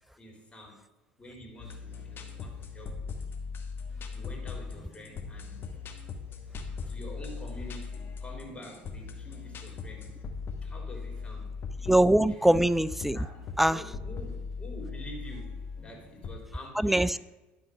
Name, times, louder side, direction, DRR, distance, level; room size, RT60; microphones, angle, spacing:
voice 1, 0.2-0.8 1.2-3.0 4.0-5.7 6.8-10.1 10.6-11.9 12.2-12.5 13.1-17.2, equal, 20° left, 0 dB, 3.1 m, -47 dB
sound 1, 1.6-16.4, left 5 dB, 40° left, 1.3 m, -39 dB
voice 2, 11.9-13.2 13.6-13.8 16.8-17.2, right 1 dB, 5° right, 17 dB, 0.3 m, -22 dB
11.0 x 4.0 x 6.3 m, 1.1 s
hypercardioid pair, 70°, 5 cm